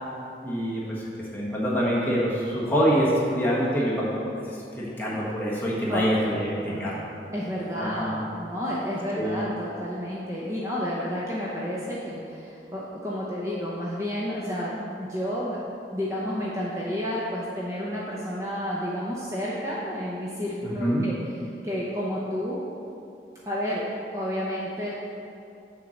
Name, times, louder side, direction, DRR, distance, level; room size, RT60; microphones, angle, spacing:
voice 1, 0.4-1.0 1.3-4.1 4.7-7.0 7.8-8.1 9.2-9.4 20.6-21.0, equal, 10° left, -7 dB, 1.4 m, -25 dB
voice 2, 5.9-6.9 7.3-15.6 15.9-21.2 21.6-22.6 23.4-23.9 24.1-24.9, equal, 15° right, -6 dB, 0.7 m, -31 dB
7.0 x 4.6 x 6.5 m, 2.6 s
head